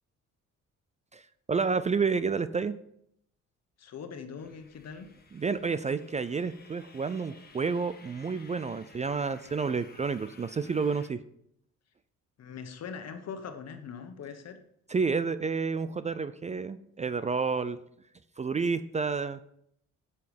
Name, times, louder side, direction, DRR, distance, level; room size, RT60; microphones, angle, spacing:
voice 1, 1.1-2.8 5.3-11.2 14.9-17.8 18.4-19.4, right 5 dB, 25° right, 14 dB, 0.4 m, -30 dB
voice 2, 3.8-5.1 12.4-14.6, left 6 dB, 60° left, 8 dB, 1.3 m, -41 dB
sound 1, 4.4-11.1, left 4 dB, 30° left, 1.5 m, -55 dB
7.8 x 7.1 x 5.2 m, 0.72 s
cardioid pair, 90°, 30 cm